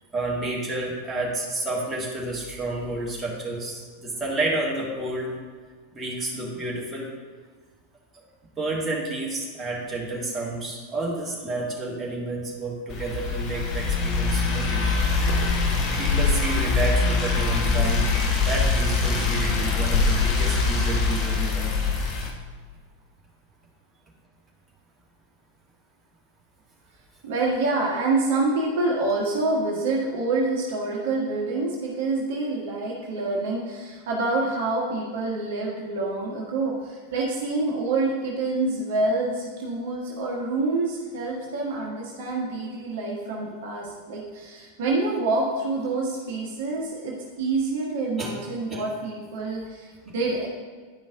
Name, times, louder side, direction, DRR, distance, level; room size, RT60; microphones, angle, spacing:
voice 1, 0.1-5.3 5.9-7.1 8.6-14.8 16.0-18.1 18.4-21.8 48.2-48.3 48.7-48.8, right 2 dB, 15° right, -4 dB, 2.0 m, -30 dB
sound 1, 12.9-22.3, left 4 dB, 35° left, 1.2 m, -23 dB
voice 2, 27.2-50.5, right 3 dB, 55° right, -3 dB, 1.3 m, -27 dB
10.0 x 5.3 x 3.7 m, 1.5 s
figure-of-eight pair, 90°, 0 cm